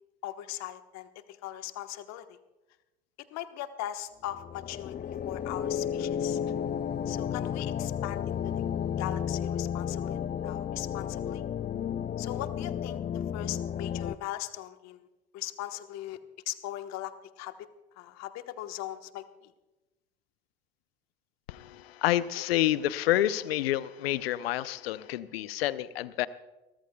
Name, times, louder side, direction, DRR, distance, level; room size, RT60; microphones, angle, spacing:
voice 1, 0.2-2.4 3.3-6.4 7.1-8.6 9.0-11.4 12.2-15.1 15.3-16.2 16.5-17.5 18.0-19.5, left 13 dB, 60° left, 9 dB, 1.2 m, -39 dB
sound 1, 4.3-14.2, left 9 dB, 30° left, 0.5 m, -32 dB
voice 2, 21.5-26.3, left 14 dB, 80° left, 17 dB, 0.6 m, -28 dB
29.0 x 14.0 x 2.3 m, 1.1 s
hypercardioid pair, 65°, 30 cm